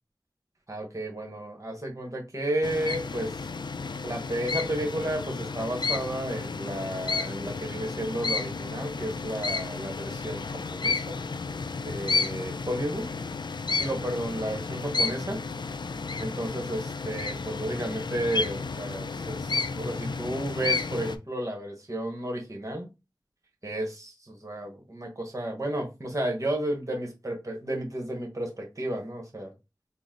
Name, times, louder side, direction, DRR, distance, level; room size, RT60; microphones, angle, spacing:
voice 1, 0.7-3.4 4.0-10.4 10.7-11.1 11.8-13.1 13.8-15.4 16.2-22.9 23.6-29.5, right 1 dB, 45° right, 1 dB, 1.3 m, -32 dB
sound 1, 2.6-21.2, left 4 dB, 70° left, 0.3 m, -32 dB
4.0 x 2.1 x 3.8 m, 0.26 s
wide cardioid pair, 45°, 8 cm